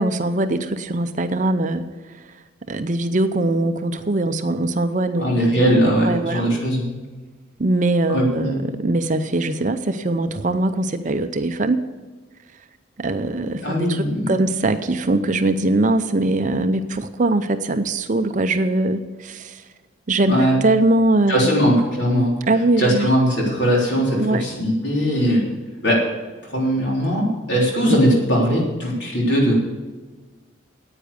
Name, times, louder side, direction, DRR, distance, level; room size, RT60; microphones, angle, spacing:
voice 1, 0.0-1.9 2.2-2.3 2.7-6.6 7.6-11.8 13.0-19.6 20.1-21.7 22.5-23.1 24.1-24.5, right 2 dB, 40° right, 9 dB, 0.6 m, -22 dB
voice 2, 5.2-6.9 8.1-8.7 13.6-14.3 20.3-20.5 21.3-22.3 22.8-25.4 25.8-26.0 26.4-29.5, equal, 60° left, -3 dB, 3.7 m, -19 dB
9.9 x 9.0 x 6.8 m, 1.3 s
head